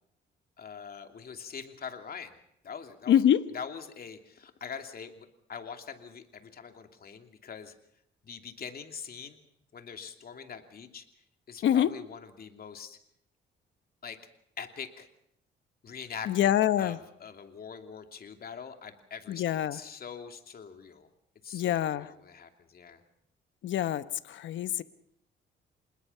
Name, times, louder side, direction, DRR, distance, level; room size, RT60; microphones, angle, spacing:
voice 1, 0.6-3.3 3.5-7.8 8.2-9.4 9.7-11.0 11.5-13.0 14.0-14.2 14.6-15.1 15.8-21.1 21.4-23.0, left 6 dB, 50° left, 6 dB, 2.8 m, -43 dB
voice 2, 3.1-3.4 11.6-11.9 16.3-17.0 19.3-19.8 21.5-22.1 23.6-24.8, left 10 dB, 70° left, 14 dB, 1.0 m, -25 dB
27.0 x 20.5 x 5.7 m, 0.74 s
cardioid pair, 90°, 20 cm